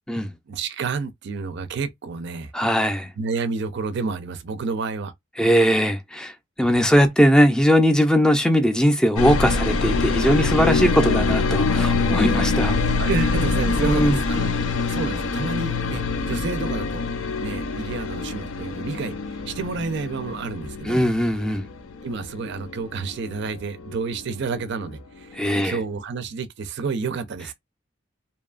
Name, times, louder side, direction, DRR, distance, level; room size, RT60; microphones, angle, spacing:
voice 1, 0.5-2.5 3.2-5.1 13.0-14.5 14.9-17.0 17.4-21.0 22.0-27.5, right 4 dB, 60° right, 0.4 m, -30 dB
voice 2, 2.5-3.1 5.4-6.3 6.6-12.8 13.8-14.2 20.8-21.6 25.3-25.8, equal, 5° left, 0.5 m, -19 dB
sound 1, 9.2-24.9 25.2-26.0, left 4 dB, 75° left, 0.5 m, -25 dB
2.7 x 2.3 x 2.4 m
head